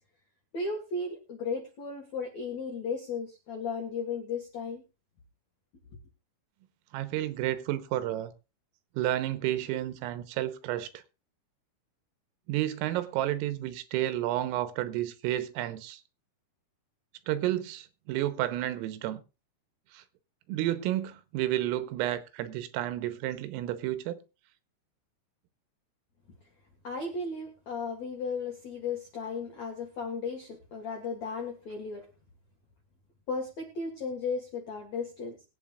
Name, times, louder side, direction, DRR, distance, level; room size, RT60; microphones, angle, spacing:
voice 1, 0.5-4.8 26.8-32.0 33.3-35.3, left 4 dB, 70° left, 1.6 m, -35 dB
voice 2, 6.9-8.3 9.0-10.9 12.5-16.0 17.3-19.2 19.9-20.0 20.5-24.2, right 13 dB, 85° right, 3.5 m, -31 dB
22.0 x 9.0 x 2.4 m
omnidirectional pair, 6.0 m